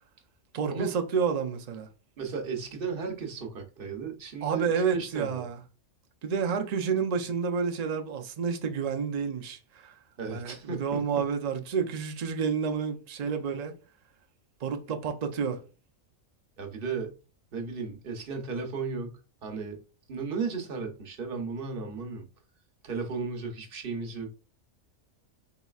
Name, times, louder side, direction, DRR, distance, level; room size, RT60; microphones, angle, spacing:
voice 1, 0.5-1.9 4.4-5.6 6.2-9.9 10.3-13.7 14.6-15.6, right 6 dB, 80° right, 0.3 m, -29 dB
voice 2, 2.2-5.5 10.2-11.3 16.6-17.1 17.5-19.8 20.1-22.2 22.8-24.3, right 5 dB, 45° right, 0.9 m, -35 dB
4.1 x 3.9 x 2.3 m
omnidirectional pair, 1.5 m